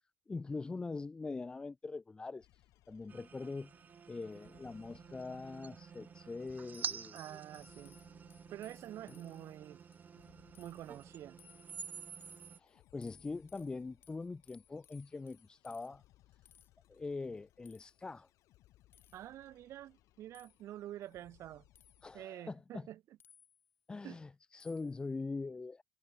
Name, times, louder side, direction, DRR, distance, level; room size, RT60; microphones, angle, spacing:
voice 1, 0.3-2.6 2.9-3.7 4.1-7.4 9.2-9.3 12.6-16.0 16.9-18.3 22.0-22.8 23.9-25.8, left 3 dB, 15° left, 1.4 m, -43 dB
sound 1, 2.4-22.2, left 16 dB, 65° left, 7.5 m, -69 dB
sound 2, 3.1-12.6, right 7 dB, 30° right, 3.7 m, -49 dB
sound 3, 6.7-9.5 9.9-10.3 10.5-10.9 11.4-12.5 13.0-15.9 16.5-16.7 17.7-18.0 18.9-19.3 20.3-20.6 21.8-22.2 23.2-23.8 24.6-25.0, left 8 dB, 40° left, 5.0 m, -65 dB
voice 2, 7.1-8.0 8.5-9.8 10.6-11.4 19.1-21.7 22.1-23.2 24.0-24.2, right 12 dB, 55° right, 5.8 m, -48 dB
cardioid pair, 150°, 6 cm